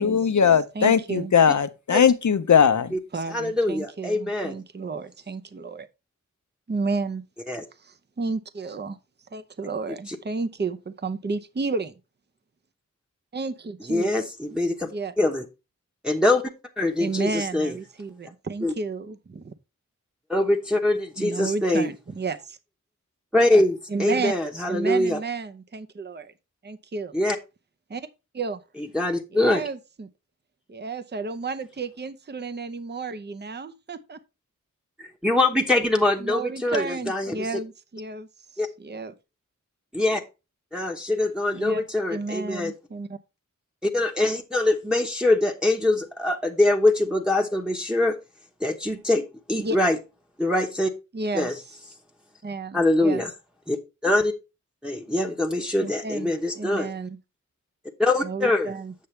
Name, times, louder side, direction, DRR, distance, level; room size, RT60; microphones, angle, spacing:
voice 1, 0.0-2.9, left 7 dB, 70° left, 0.7 m, -19 dB
voice 2, 0.7-1.3 3.1-5.9 6.7-7.2 7.8-9.0 9.3-11.9 13.3-14.1 14.9-15.1 17.0-19.5 21.2-22.6 23.9-24.3 24.7-26.3 26.6-27.1 27.9-28.1 28.3-28.6 29.3-30.1 30.7-34.2 36.2-38.3 38.5-39.1 41.5-41.8 42.1-43.2 49.6-49.8 51.1-51.5 52.4-53.2 55.8-57.2 58.2-58.9, right 4 dB, 35° right, 0.7 m, -32 dB
voice 3, 3.3-4.5 7.5-7.6 10.1-10.2 13.9-14.9 15.2-15.4 16.0-16.4 16.8-17.7 18.6-18.7 20.3-21.9 23.3-25.2 27.1-27.4 28.9-29.6 35.0-37.5 38.6-38.7 39.9-40.2 40.7-42.7 43.8-48.2 48.6-50.0 50.4-50.9 51.3-51.5 52.7-53.3 53.7-53.8 54.0-54.3 54.8-56.9 58.0-58.7, left 2 dB, 5° right, 1.0 m, -23 dB
8.5 x 6.9 x 3.2 m
wide cardioid pair, 95°, 30 cm